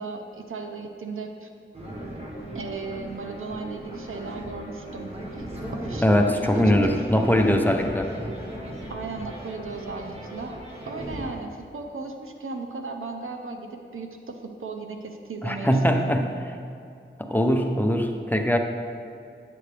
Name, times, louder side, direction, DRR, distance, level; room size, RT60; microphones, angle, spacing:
voice 1, 0.0-1.5 2.5-5.5 5.7-7.3 8.9-10.6 10.9-16.3, right 4 dB, 90° right, 4 dB, 0.7 m, -36 dB
sound 1, 1.7-11.3, right 1 dB, 30° right, 1.5 m, -36 dB
voice 2, 6.0-8.1 15.4-16.3 17.2-18.6, equal, 10° left, 4 dB, 0.7 m, -21 dB
9.5 x 7.8 x 3.4 m, 2.5 s
wide cardioid pair, 50°, 21 cm